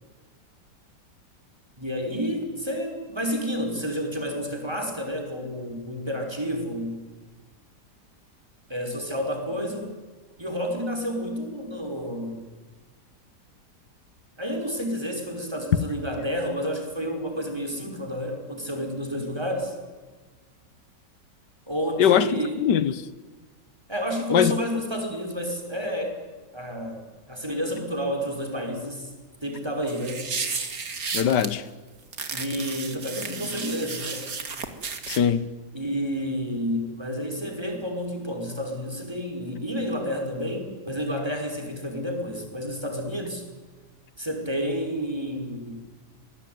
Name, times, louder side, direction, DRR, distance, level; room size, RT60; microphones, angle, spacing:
voice 1, 1.8-7.0 8.7-9.9 10.4-12.4 14.4-19.7 21.7-22.6 23.9-26.2 26.5-27.0 27.3-29.1 29.4-30.3 32.3-34.2 35.7-43.4 44.2-45.8, equal, 15° right, 5.2 m, -30 dB
voice 2, 22.0-23.0 24.3-24.5 31.1-31.6 35.1-35.5, left 9 dB, 85° left, 1.8 m, -21 dB
sound 1, 29.9-31.5 32.1-35.2, right 5 dB, 55° right, 2.5 m, -33 dB
25.5 x 20.0 x 9.5 m
omnidirectional pair, 1.8 m